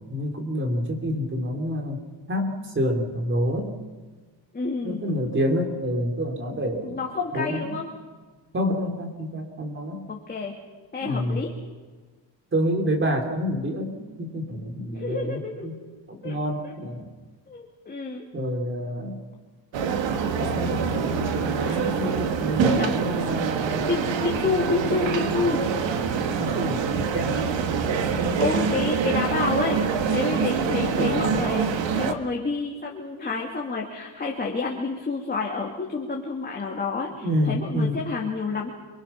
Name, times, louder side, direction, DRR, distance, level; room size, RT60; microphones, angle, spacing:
voice 1, 0.1-2.0 2.3-3.7 4.8-7.0 7.3-7.8 8.5-10.1 11.0-11.4 12.5-15.8 16.1-17.1 18.3-19.2 20.3-23.9 26.4-27.5 30.9-31.4 37.2-38.0, equal, 25° right, 3 dB, 3.3 m, -28 dB
voice 2, 4.5-5.0 6.8-7.8 10.1-10.5 10.9-11.5 14.9-15.7 16.2-16.4 16.6-16.8 17.5-18.2 21.6-21.8 22.6-22.9 23.2-23.3 23.9-25.6 28.4-38.7, left 4 dB, 20° left, -1 dB, 2.3 m, -29 dB
sound 1, 19.7-32.1, right 6 dB, 70° right, 1.7 m, -25 dB
28.5 x 23.5 x 5.9 m, 1.3 s
cardioid pair, 160°, 46 cm